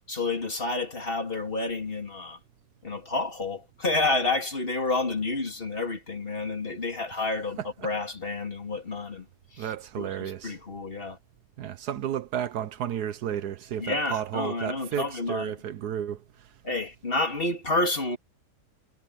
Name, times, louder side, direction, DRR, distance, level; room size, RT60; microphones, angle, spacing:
voice 1, 0.1-2.4 2.8-9.3 9.5-11.2 13.8-15.5 16.6-18.2, left 2 dB, 35° left, 3.1 m, -29 dB
voice 2, 9.6-10.6 11.6-16.5, right 9 dB, 75° right, 1.3 m, -32 dB
omnidirectional pair, 1.7 m